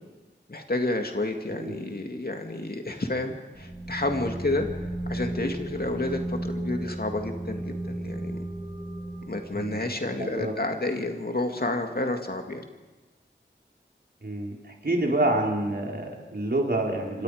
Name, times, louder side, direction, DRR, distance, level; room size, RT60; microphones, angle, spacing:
voice 1, 0.5-8.4 9.3-12.6, left 2 dB, 50° left, 4 dB, 2.4 m, -30 dB
sound 1, 3.5-9.8, right 1 dB, 25° right, 5.4 m, -34 dB
voice 2, 9.5-9.9 10.2-10.5 14.2-17.2, right 1 dB, 55° right, 0 dB, 4.5 m, -27 dB
28.5 x 25.0 x 5.1 m, 1.2 s
wide cardioid pair, 60°, 19 cm